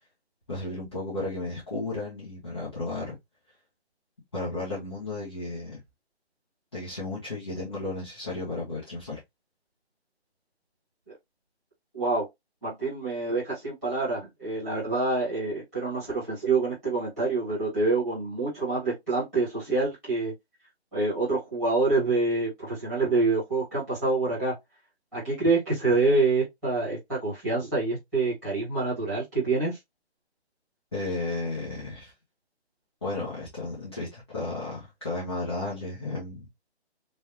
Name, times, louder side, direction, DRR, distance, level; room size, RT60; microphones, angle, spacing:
voice 1, 0.5-3.1 4.3-5.8 6.7-9.2 30.9-32.1 33.0-36.5, left 2 dB, 25° left, 1.2 m, -33 dB
voice 2, 11.9-12.2 12.6-20.3 20.9-24.5 25.1-29.8, right 3 dB, ahead, 1.8 m, -26 dB
3.5 x 3.3 x 2.8 m
hypercardioid pair, 175°, 33 cm